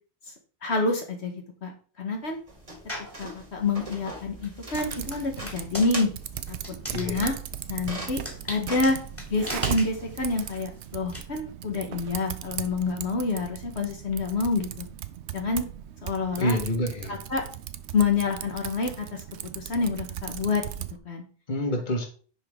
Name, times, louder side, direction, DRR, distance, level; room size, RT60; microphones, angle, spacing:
voice 1, 0.6-1.3 1.6-1.7 2.0-2.4 3.2-6.1 6.7-7.3 7.7-8.2 8.5-9.0 9.3-14.9 15.3-15.6 16.0-16.6 17.1-17.4 17.9-19.2 19.5-20.6 21.0-21.2, left 3 dB, 65° left, 2 dB, 1.5 m, -27 dB
sound 1, 2.5-10.6, right 1 dB, 30° right, 1.7 m, -43 dB
sound 2, 2.9-3.2 3.8-11.2, equal, 10° left, 2.2 m, -39 dB
Typing, 4.7-21.0, right 11 dB, 70° right, 0.9 m, -38 dB
voice 2, 6.9-7.3 16.4-17.2 21.5-22.1, equal, 40° left, 3 dB, 1.6 m, -27 dB
10.0 x 5.1 x 3.6 m, 0.41 s
omnidirectional pair, 1.2 m